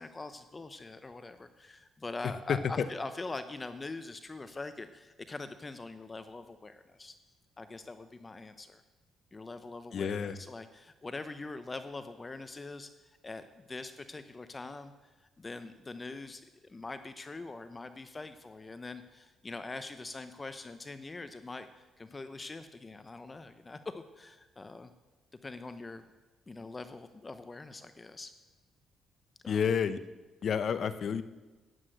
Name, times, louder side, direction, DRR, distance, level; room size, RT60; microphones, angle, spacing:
voice 1, 0.0-7.1 7.6-8.8 9.3-12.9 13.2-14.9 15.4-24.9 25.4-26.0 26.5-28.3 29.4-29.6, left 3 dB, 25° left, 10 dB, 0.8 m, -43 dB
voice 2, 2.5-2.9 9.9-10.4 29.5-30.0 30.4-31.2, left 7 dB, 60° left, 13 dB, 0.9 m, -30 dB
12.5 x 9.8 x 7.8 m, 1.2 s
cardioid pair, 90°, 0 cm